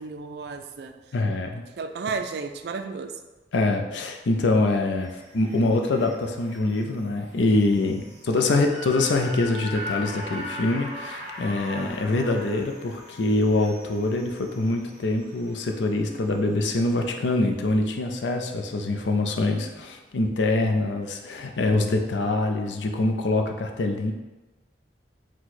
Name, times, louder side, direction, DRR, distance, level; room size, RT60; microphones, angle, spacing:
voice 1, 0.0-0.9 1.8-3.1 8.3-8.6, right 4 dB, 65° right, 7 dB, 0.4 m, -33 dB
voice 2, 1.1-1.6 3.5-24.1, left 2 dB, 85° left, 4 dB, 0.5 m, -24 dB
sound 1, 5.0-17.3 17.7-17.8, left 1 dB, 40° right, 1.0 m, -40 dB
4.6 x 2.2 x 4.1 m, 1.1 s
head